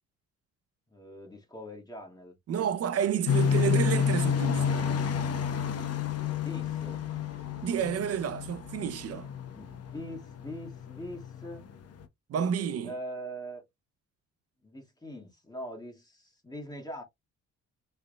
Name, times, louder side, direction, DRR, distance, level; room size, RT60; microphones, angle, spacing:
voice 1, 0.9-2.4 6.3-7.0 9.5-11.7 12.8-13.6 14.6-17.0, equal, 15° left, 1.8 m, -42 dB
voice 2, 2.5-4.9 7.6-9.3 12.3-12.9, right 8 dB, 55° right, 0.6 m, -30 dB
sound 1, 3.3-12.0, left 7 dB, 55° left, 0.9 m, -30 dB
3.5 x 3.4 x 2.2 m
cardioid pair, 90°, 30 cm